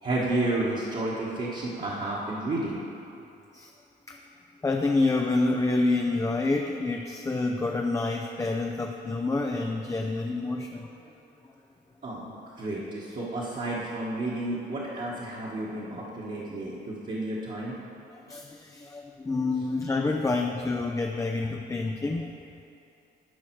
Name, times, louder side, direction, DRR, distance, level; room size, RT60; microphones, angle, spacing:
voice 1, 0.0-2.8 12.0-17.8, right 2 dB, 40° right, -7 dB, 1.5 m, -31 dB
voice 2, 4.6-10.9 18.1-22.3, left 3 dB, 15° left, 2 dB, 0.5 m, -28 dB
12.5 x 4.9 x 4.6 m, 2.8 s
cardioid pair, 90°, 20 cm